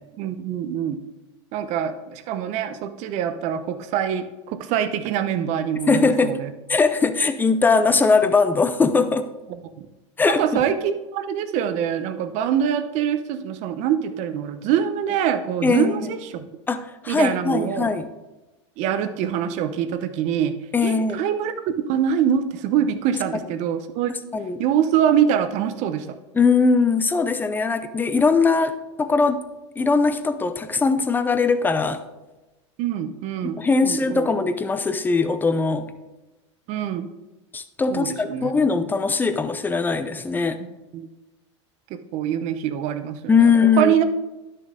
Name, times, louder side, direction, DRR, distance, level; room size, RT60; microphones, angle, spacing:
voice 1, 0.2-1.0 1.5-6.5 9.8-9.9 10.3-16.5 17.1-17.9 18.8-20.6 20.8-21.5 21.9-24.1 24.6-26.2 32.8-34.3 36.7-37.1 37.9-38.5 40.6-41.1 41.9-44.0, right 9 dB, 50° right, 10 dB, 0.9 m, -24 dB
voice 2, 5.9-6.4 6.7-9.3 10.2-10.6 15.6-16.1 16.7-18.1 20.7-21.2 24.3-24.6 26.3-29.4 29.8-32.0 33.4-35.9 37.5-40.6 43.3-43.9, left 4 dB, 10° left, 11 dB, 0.6 m, -20 dB
11.0 x 6.7 x 3.7 m, 1.1 s
hypercardioid pair, 115°, 16 cm